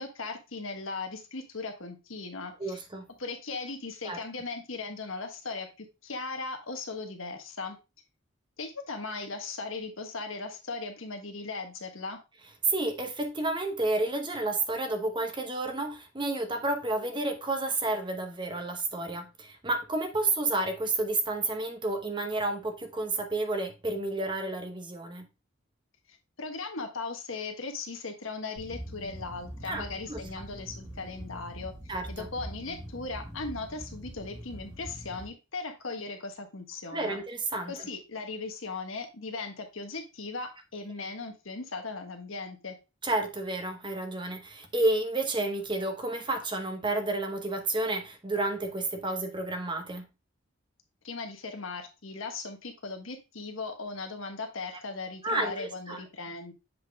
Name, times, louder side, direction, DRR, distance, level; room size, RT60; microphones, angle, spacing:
voice 1, 0.0-2.8 3.2-7.8 8.6-12.2 26.4-31.7 32.1-37.2 37.7-42.8 51.0-56.5, left 3 dB, 75° left, 1.4 m, -38 dB
voice 2, 2.6-3.1 4.0-4.2 12.7-25.3 29.7-30.2 31.9-32.3 36.9-37.9 43.0-50.1 55.2-56.0, right 2 dB, 25° right, 0.9 m, -31 dB
sound 1, 28.6-35.3, equal, 5° right, 1.7 m, -43 dB
7.6 x 4.0 x 3.4 m
head